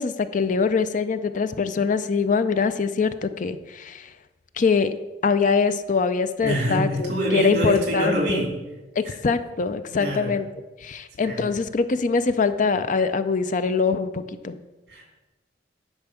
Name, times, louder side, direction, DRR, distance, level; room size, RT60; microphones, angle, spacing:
voice 1, 0.0-4.1 4.6-4.9 5.2-8.5 9.0-10.4 10.8-14.6, left 5 dB, 45° left, 12 dB, 0.4 m, -23 dB
voice 2, 6.4-8.5 10.0-10.3 11.2-11.5 14.9-15.1, equal, 60° right, 1 dB, 2.7 m, -25 dB
10.0 x 4.5 x 7.0 m, 1.2 s
head